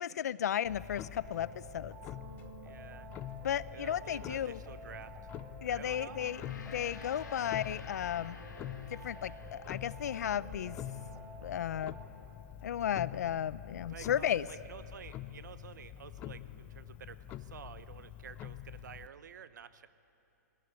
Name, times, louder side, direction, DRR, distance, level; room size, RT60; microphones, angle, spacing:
voice 1, 0.0-1.9 3.4-4.6 5.6-6.4 6.7-8.4 8.9-10.8 11.4-11.9 12.6-14.5, left 10 dB, 65° left, 18 dB, 0.6 m, -34 dB
Clock, 0.7-19.1, left 12 dB, 15° left, 0.5 m, -46 dB
sound 1, 1.2-12.0, right 5 dB, 15° right, 1.9 m, -52 dB
voice 2, 2.6-3.1 3.7-5.3 5.7-6.4 7.5-7.6 13.9-19.9, right 8 dB, 80° right, 14 dB, 0.9 m, -50 dB
Gong, 6.0-10.6, left 6 dB, 90° left, 2.4 m, -53 dB
21.0 x 18.0 x 9.6 m, 2.8 s
hypercardioid pair, 165°, 10 cm